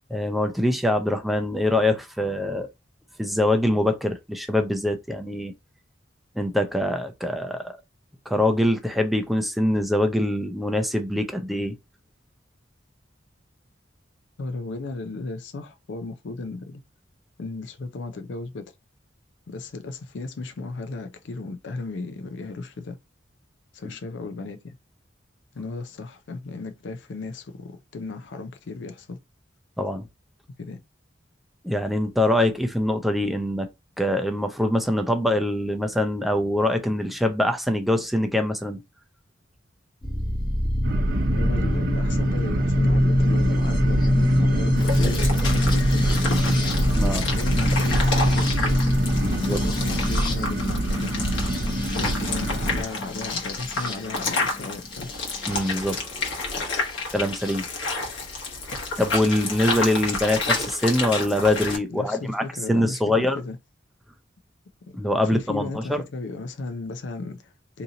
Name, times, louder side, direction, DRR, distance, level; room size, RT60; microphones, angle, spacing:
voice 1, 0.1-2.7 3.2-5.5 6.4-7.8 8.3-11.7 29.8-30.1 31.6-33.7 34.0-38.8 46.9-47.2 49.2-49.6 52.0-52.1 55.5-56.3 57.1-57.6 59.0-63.4 64.9-66.0, left 1 dB, ahead, 0.4 m, -24 dB
voice 2, 14.4-16.8 17.4-18.6 19.5-23.0 23.7-24.8 25.5-29.2 30.6-30.8 41.3-46.6 47.0-48.8 49.5-51.2 52.0-55.1 61.9-63.6 64.9-65.0 65.2-67.8, left 3 dB, 70° left, 0.4 m, -35 dB
sound 1, 40.0-55.8 56.9-57.5, left 1 dB, 25° left, 0.9 m, -25 dB
sound 2, 40.8-52.8, right 1 dB, 60° right, 0.6 m, -26 dB
sound 3, 44.8-61.8, left 3 dB, 85° left, 1.1 m, -30 dB
2.8 x 2.7 x 3.7 m
head